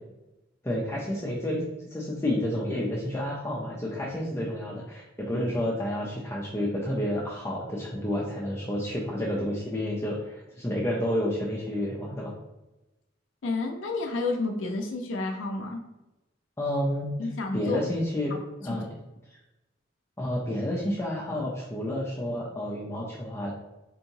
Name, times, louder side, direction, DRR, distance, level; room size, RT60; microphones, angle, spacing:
voice 1, 0.6-12.3 16.6-17.1 17.5-18.3 18.6-18.9 19.3-19.4 20.2-23.5, left 1 dB, 15° left, -5 dB, 0.5 m, -30 dB
voice 2, 13.4-15.8 17.2-17.8, left 3 dB, 70° left, 3 dB, 0.4 m, -30 dB
4.4 x 2.8 x 2.7 m, 1.0 s
head